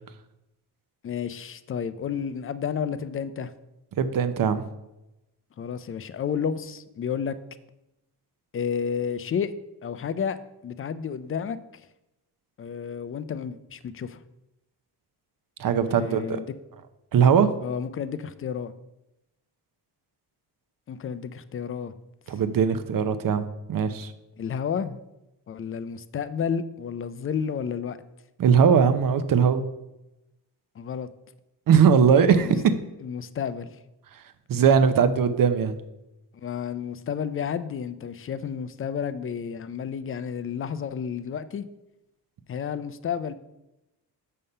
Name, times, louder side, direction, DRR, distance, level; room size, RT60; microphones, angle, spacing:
voice 1, 1.0-3.5 5.6-7.4 8.5-9.5 9.8-10.4 10.6-11.6 12.6-14.2 15.9-16.5 17.6-18.7 20.9-21.9 22.3-22.4 24.4-25.0 25.5-28.0 30.8-31.1 32.4-32.5 33.0-33.7 36.3-41.6 42.5-43.3, left 7 dB, 35° left, 14 dB, 0.4 m, -31 dB
voice 2, 4.0-4.6 15.6-16.4 17.1-17.5 22.3-24.1 28.4-29.6 31.7-32.6 34.5-35.8, right 7 dB, 55° right, 11 dB, 0.7 m, -20 dB
6.7 x 5.5 x 5.5 m, 0.93 s
cardioid pair, 125°, 41 cm